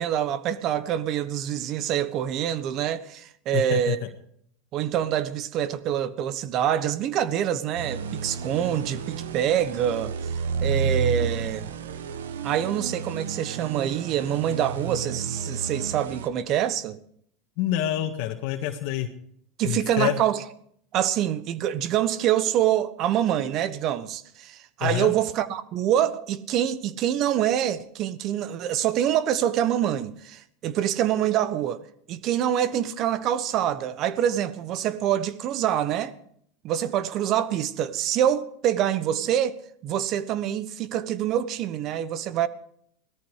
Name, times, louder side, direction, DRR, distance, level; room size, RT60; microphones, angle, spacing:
voice 1, 0.0-4.0 4.7-10.1 10.6-11.7 12.4-17.0 19.6-20.4 20.9-31.8 32.1-36.2 36.6-39.6 39.8-42.5, right 10 dB, 50° right, 1.1 m, -25 dB
voice 2, 3.5-3.9 17.6-19.1 19.6-20.2 24.8-25.1, left 12 dB, 65° left, 1.6 m, -27 dB
sound 1, 7.8-16.3, right 6 dB, 90° right, 1.1 m, -31 dB
18.0 x 13.5 x 4.9 m
hypercardioid pair, 105°, 0 cm